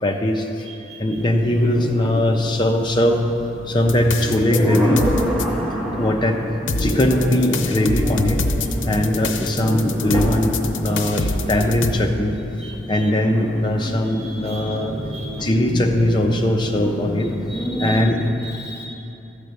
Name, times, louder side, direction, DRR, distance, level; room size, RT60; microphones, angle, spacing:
voice 1, 0.0-0.7 1.0-3.3 3.7-5.1 5.8-6.4 6.8-8.4 8.9-10.6 10.8-12.4 12.9-14.9 15.4-17.3 17.8-18.3, left 1 dB, 25° left, 2 dB, 0.7 m, -20 dB
voice 2, 0.6-1.2 12.6-13.1 14.0-14.8 15.1-15.5 17.5-18.0 18.4-18.9, right 1 dB, 55° right, -6 dB, 2.7 m, -38 dB
sound 1, 1.1-18.3, equal, ahead, 1.1 m, -28 dB
sound 2, 3.9-5.4 6.7-11.9, left 2 dB, 70° left, 0.7 m, -25 dB
13.5 x 5.1 x 8.0 m, 2.8 s
head